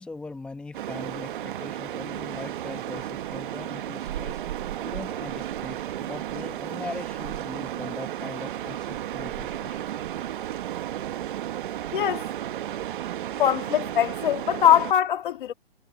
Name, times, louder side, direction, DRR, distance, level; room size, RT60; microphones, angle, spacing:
voice 1, 0.0-4.4 4.8-9.9 10.2-10.8, left 3 dB, 5° left, 1.1 m, -41 dB
sound 1, 0.7-14.9, right 12 dB, 55° right, 1.3 m, -33 dB
voice 2, 11.9-12.3 13.4-15.5, left 10 dB, 55° left, 2.5 m, -22 dB
hypercardioid pair, 160°, 31 cm